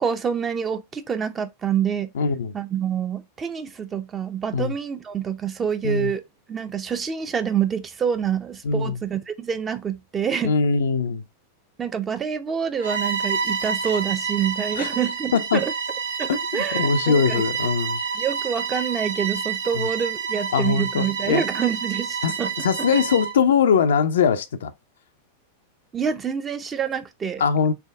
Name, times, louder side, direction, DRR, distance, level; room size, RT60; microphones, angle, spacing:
voice 1, 0.0-2.1 2.5-6.2 6.5-10.5 11.8-15.7 16.2-17.4 18.1-22.5 25.9-27.4, right 7 dB, 20° right, 0.6 m, -27 dB
voice 2, 2.1-2.5 4.5-4.7 5.8-6.1 8.6-9.0 10.4-11.2 14.8-14.9 15.3-15.6 16.3-18.0 19.7-19.9 20.5-21.4 22.2-22.3 22.6-24.7 27.4-27.7, left 6 dB, 65° left, 0.4 m, -21 dB
Bowed string instrument, 12.8-23.4, right 6 dB, 70° right, 1.0 m, -28 dB
3.9 x 3.5 x 3.4 m
figure-of-eight pair, 90°, 0 cm